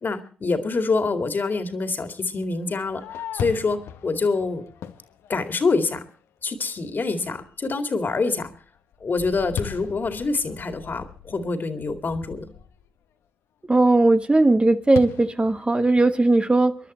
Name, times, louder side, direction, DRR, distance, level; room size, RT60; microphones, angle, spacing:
voice 1, 0.0-3.0 3.3-4.6 5.3-6.0 6.4-8.5 9.0-12.5, left 3 dB, 50° left, 2.2 m, -26 dB
Fireworks, 2.5-6.0 6.6-6.7 7.2-7.6 8.0-12.9 14.9-16.3, left 8 dB, 80° left, 1.0 m, -38 dB
voice 2, 13.7-16.8, right 2 dB, 25° right, 1.0 m, -18 dB
23.5 x 11.0 x 4.3 m
supercardioid pair, 45°, 4 cm